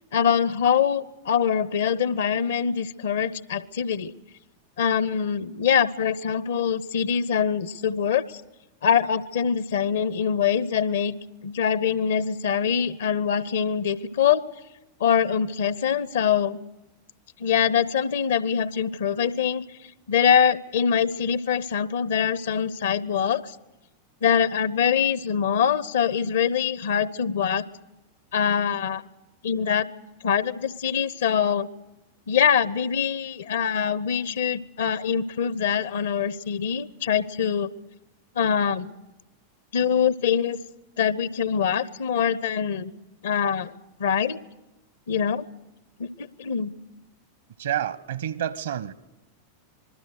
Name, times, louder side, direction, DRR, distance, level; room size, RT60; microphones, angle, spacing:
voice 1, 0.1-4.1 4.8-8.4 8.8-11.1 11.4-14.4 15.0-16.6 17.4-19.6 20.1-23.6 24.2-27.6 28.3-29.0 29.4-29.9 30.2-31.7 32.3-37.7 38.4-38.9 39.7-40.6 41.0-42.9 43.2-43.7 44.0-44.4 45.1-45.5 46.0-46.7, left 7 dB, 60° left, 20 dB, 0.8 m, -24 dB
voice 2, 47.6-48.9, right 10 dB, 65° right, 17 dB, 1.0 m, -29 dB
26.5 x 21.0 x 6.5 m, 1.0 s
figure-of-eight pair, 90°, 0 cm